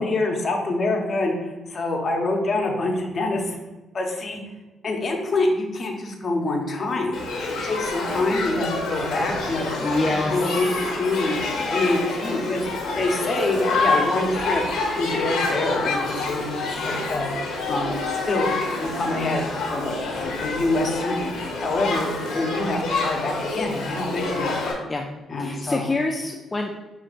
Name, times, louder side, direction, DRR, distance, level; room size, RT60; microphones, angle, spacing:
voice 1, 0.0-3.6 3.9-4.4 4.8-7.2 7.6-12.6 12.9-14.6 14.9-17.3 17.7-24.8 25.3-25.9, left 2 dB, 45° left, 1 dB, 0.9 m, -26 dB
Shout / Human group actions, 7.1-24.7, left 3 dB, 80° left, 1.1 m, -27 dB
voice 2, 9.8-10.6 24.9-25.1 25.4-26.8, left 2 dB, 25° left, 2 dB, 0.4 m, -26 dB
6.5 x 2.8 x 2.5 m, 1.1 s
cardioid pair, 90°, 0 cm